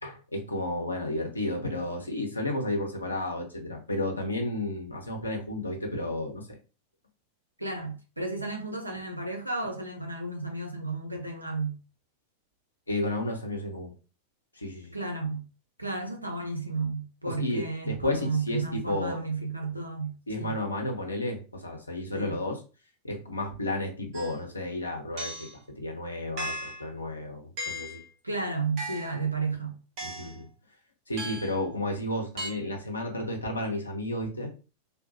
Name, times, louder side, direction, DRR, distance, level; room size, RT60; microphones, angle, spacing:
voice 1, 0.0-6.5 12.9-13.9 14.5-15.0 17.3-19.2 20.3-22.6 23.0-28.0 30.0-30.5 31.1-34.5, left 1 dB, 80° left, 0.7 m, -32 dB
voice 2, 7.6-11.8 14.9-15.4 15.8-20.5 22.1-22.4 28.2-29.8, right 3 dB, 85° right, 0.6 m, -32 dB
sound 1, 24.1-24.4 25.2-25.6 26.4-26.9 27.6-28.0 28.8-29.2 30.0-30.4 31.2-31.6 32.4-32.5, equal, 40° right, 0.8 m, -36 dB
3.4 x 2.2 x 2.7 m
figure-of-eight pair, 90°, 0 cm